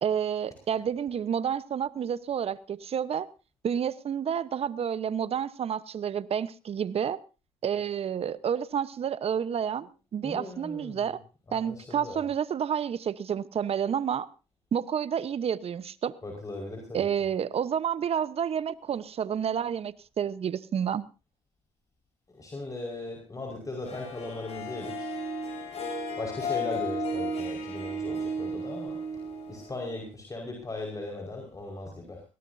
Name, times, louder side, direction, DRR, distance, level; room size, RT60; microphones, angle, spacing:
voice 1, 0.0-3.3 3.6-7.2 7.6-11.2 11.5-14.3 14.7-16.1 16.9-21.0, right 8 dB, 50° right, 16 dB, 1.1 m, -30 dB
voice 2, 10.2-11.1 11.5-12.3 16.2-17.1 22.3-25.1 26.2-29.0 29.5-32.2, left 2 dB, 25° left, 1 dB, 5.3 m, -38 dB
Harp, 23.8-30.1, equal, 55° left, 7.2 m, -34 dB
21.5 x 18.0 x 2.8 m, 0.32 s
supercardioid pair, 65°, 13 cm